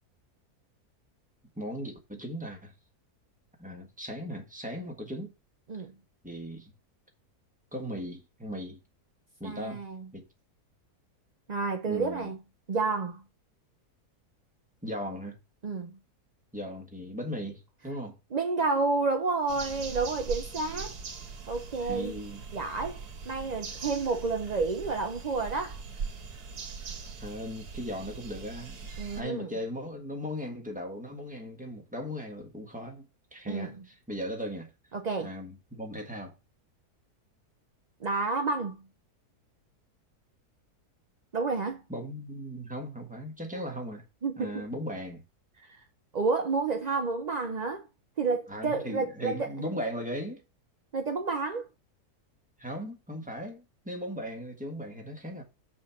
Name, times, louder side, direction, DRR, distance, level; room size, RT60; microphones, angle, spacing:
voice 1, 1.6-2.7 3.6-5.3 6.2-6.7 7.7-8.8 9.4-9.8 10.1-10.3 11.9-12.3 14.8-15.4 16.5-18.2 21.8-22.4 27.2-33.1 33.3-34.7 35.2-36.4 41.9-44.0 44.4-45.2 48.5-50.4 52.6-55.4, equal, 5° right, 1.4 m, -38 dB
voice 2, 9.4-10.1 11.5-12.4 12.7-13.2 15.6-16.0 18.3-20.9 21.5-22.2 22.5-23.0 23.3-25.8 29.0-29.5 33.5-33.7 34.9-35.3 38.0-38.8 41.3-41.8 44.2-44.5 46.1-47.9 48.2-49.5 50.9-51.7, right 4 dB, 55° right, 0.4 m, -30 dB
sound 1, 19.5-29.2, right 5 dB, 75° right, 1.8 m, -41 dB
6.3 x 4.4 x 5.8 m
omnidirectional pair, 1.7 m